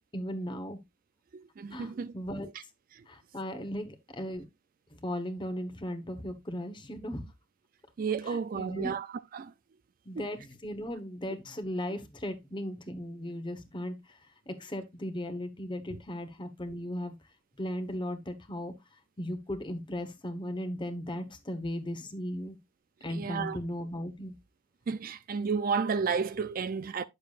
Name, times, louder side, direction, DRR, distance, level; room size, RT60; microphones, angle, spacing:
voice 1, 0.1-0.8 1.7-2.5 3.1-4.4 5.0-7.2 8.2-8.9 10.0-14.2 14.5-17.2 17.6-18.7 19.2-22.6 23.0-24.3, equal, 20° left, 1.0 m, -37 dB
voice 2, 1.3-2.1 8.0-9.1 9.3-9.5 15.9-16.0 23.1-23.6 24.9-27.0, right 5 dB, 40° right, 0.3 m, -32 dB
10.0 x 6.8 x 2.4 m
head